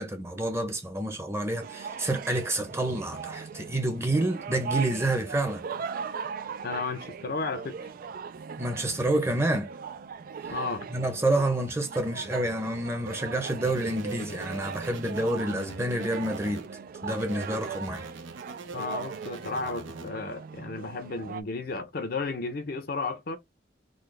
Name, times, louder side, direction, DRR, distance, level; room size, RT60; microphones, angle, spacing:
voice 1, 0.0-5.6 8.6-9.7 10.9-16.7 17.0-18.1, right 1 dB, 15° right, 0.8 m, -28 dB
sound 1, 1.6-21.4, right 6 dB, 50° right, 0.3 m, -39 dB
voice 2, 6.6-7.8 10.5-10.9 18.7-23.4, left 3 dB, 50° left, 0.6 m, -33 dB
sound 2, 13.7-16.7 17.1-20.1, right 2 dB, 90° right, 0.6 m, -43 dB
3.9 x 2.2 x 3.3 m
head